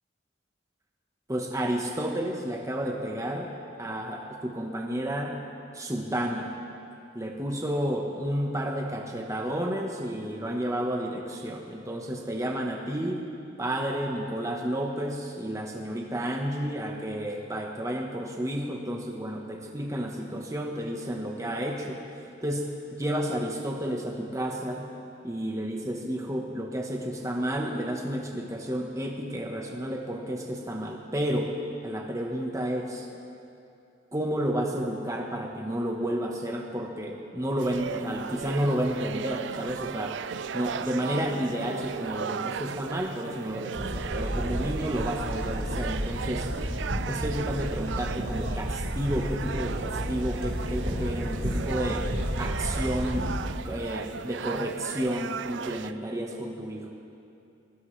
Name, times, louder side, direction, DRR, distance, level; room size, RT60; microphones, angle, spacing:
voice 1, 1.3-3.5 3.8-5.4 5.7-6.5 7.1-13.2 13.6-22.0 22.4-24.9 25.2-31.5 31.8-33.1 34.1-40.2 40.5-46.5 47.1-52.1 52.4-53.3 53.6-56.9, equal, 15° right, 0 dB, 1.2 m, -31 dB
sound 1, 37.6-55.9, right 6 dB, 70° right, 0.4 m, -36 dB
sound 2, 43.7-53.4, equal, 50° right, 4.4 m, -32 dB
23.5 x 16.5 x 3.3 m, 2.6 s
head